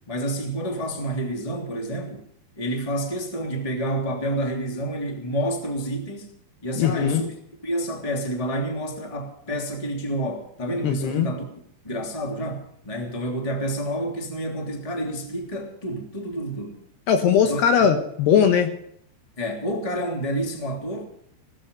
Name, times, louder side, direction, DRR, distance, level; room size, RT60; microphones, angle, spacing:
voice 1, 0.1-2.2 2.6-7.3 7.6-11.4 11.8-16.8 17.4-17.6 19.4-21.1, right 1 dB, 10° left, 2.1 m, -29 dB
voice 2, 6.8-7.2 10.8-11.3 17.1-18.7, left 8 dB, 70° left, 3.0 m, -19 dB
19.0 x 13.5 x 5.4 m
omnidirectional pair, 5.4 m